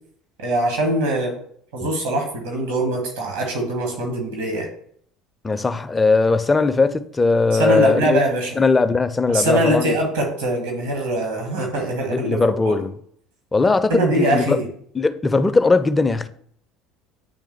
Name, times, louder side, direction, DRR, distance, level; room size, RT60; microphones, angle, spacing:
voice 1, 0.4-1.3 1.7-4.7 7.5-8.6 9.3-12.4 12.6-12.8 13.9-14.7, right 1 dB, 70° right, 1.7 m, -22 dB
voice 2, 5.4-8.2 8.6-9.9 12.1-12.9 13.5-14.6 14.9-16.3, left 3 dB, 20° left, 0.4 m, -19 dB
8.4 x 3.5 x 3.3 m
figure-of-eight pair, 65°, 0 cm